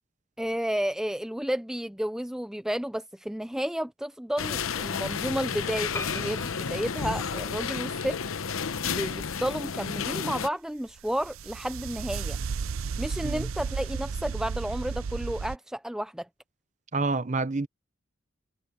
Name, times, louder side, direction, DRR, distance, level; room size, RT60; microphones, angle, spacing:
voice 1, 0.4-8.2 8.8-12.4 13.0-16.3, equal, 5° right, 0.3 m, -32 dB
sound 1, 4.4-10.5, left 6 dB, 80° left, 0.8 m, -32 dB
Piano, 5.9-7.9 8.5-9.3 9.6-9.7 9.9-10.0, left 3 dB, 15° left, 6.9 m, -42 dB
sound 2, 11.0-15.6, right 5 dB, 80° right, 0.5 m, -33 dB
voice 2, 16.9-17.7, right 3 dB, 35° right, 0.7 m, -28 dB
head